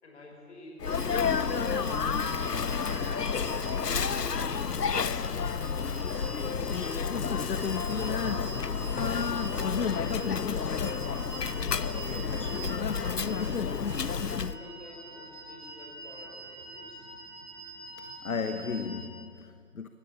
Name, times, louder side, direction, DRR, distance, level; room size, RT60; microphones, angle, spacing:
voice 1, 0.0-3.8 4.2-5.6 8.3-10.7 11.0-13.8 14.4-17.1, left 2 dB, 45° left, 6.0 m, -51 dB
Sneeze, 0.8-14.6, left 6 dB, 85° left, 1.0 m, -30 dB
sound 1, 0.8-19.1, right 2 dB, 55° right, 5.5 m, -46 dB
voice 2, 18.0-19.9, left 5 dB, 60° left, 1.3 m, -35 dB
22.0 x 19.0 x 9.9 m
figure-of-eight pair, 165°, 48 cm